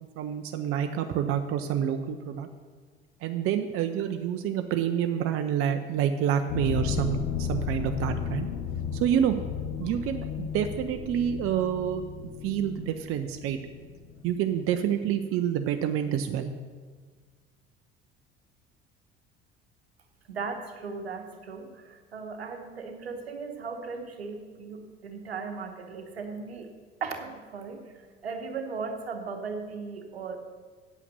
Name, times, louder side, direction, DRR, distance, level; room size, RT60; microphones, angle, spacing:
voice 1, 0.2-2.5 3.2-8.5 8.9-9.4 9.8-12.0 12.4-13.6 14.2-16.5, right 9 dB, 45° right, 7 dB, 0.7 m, -28 dB
sound 1, 6.5-15.3, left 7 dB, 65° left, 0.8 m, -34 dB
voice 2, 20.3-26.7 27.0-30.4, right 4 dB, 80° right, 4 dB, 1.1 m, -37 dB
8.5 x 8.2 x 6.8 m, 1.5 s
figure-of-eight pair, 60°, 30 cm